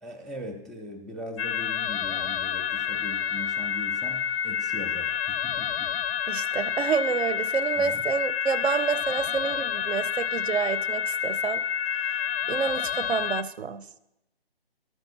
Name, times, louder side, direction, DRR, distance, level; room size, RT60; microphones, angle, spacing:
voice 1, 0.0-5.9 7.8-8.0, equal, ahead, -1 dB, 0.3 m, -40 dB
sound 1, 1.4-13.4, left 8 dB, 80° left, 0.5 m, -29 dB
voice 2, 6.3-11.6 12.5-13.8, right 6 dB, 85° right, 14 dB, 0.6 m, -28 dB
12.5 x 4.6 x 2.8 m, 0.88 s
hypercardioid pair, 175°, 31 cm